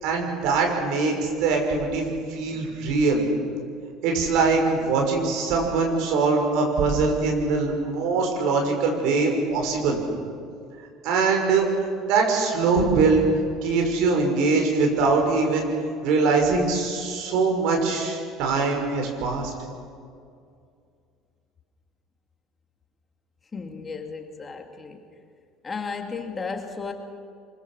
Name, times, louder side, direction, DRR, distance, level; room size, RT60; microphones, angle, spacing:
voice 1, 0.0-2.0 2.3-3.2 4.0-10.0 11.0-11.7 12.1-13.2 13.6-15.7 16.0-19.5, right 4 dB, 65° right, 2 dB, 6.0 m, -22 dB
voice 2, 23.5-25.0 25.6-26.9, left 5 dB, 25° left, 4 dB, 2.7 m, -34 dB
24.5 x 23.0 x 6.5 m, 2.3 s
hypercardioid pair, 65°, 0 cm